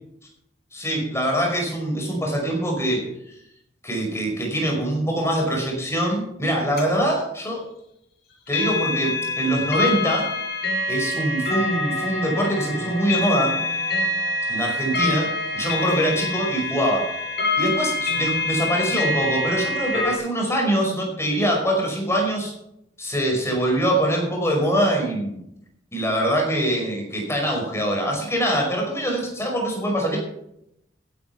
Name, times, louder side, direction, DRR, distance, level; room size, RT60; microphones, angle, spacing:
voice 1, 0.7-3.0 3.8-7.6 8.5-10.3 10.9-13.6 14.5-15.3 15.5-17.1 17.6-22.5 23.0-25.4 25.9-30.2, right 1 dB, 15° left, 1 dB, 5.3 m, -23 dB
sound 1, 6.8-6.9 8.5-20.2, left 2 dB, 55° left, 6.2 m, -26 dB
15.5 x 11.5 x 4.7 m, 0.78 s
head